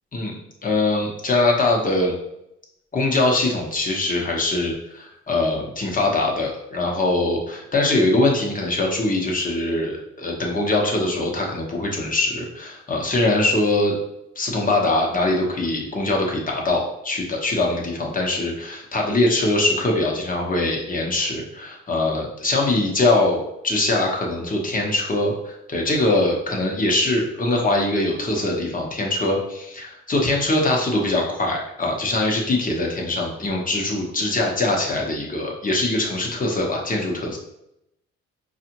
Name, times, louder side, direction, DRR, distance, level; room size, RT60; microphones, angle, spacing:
voice 1, 0.6-2.1 2.9-14.0 14.4-37.4, left 2 dB, 25° left, 0 dB, 1.0 m, -22 dB
4.7 x 2.5 x 2.9 m, 0.82 s
cardioid pair, 90°, 30 cm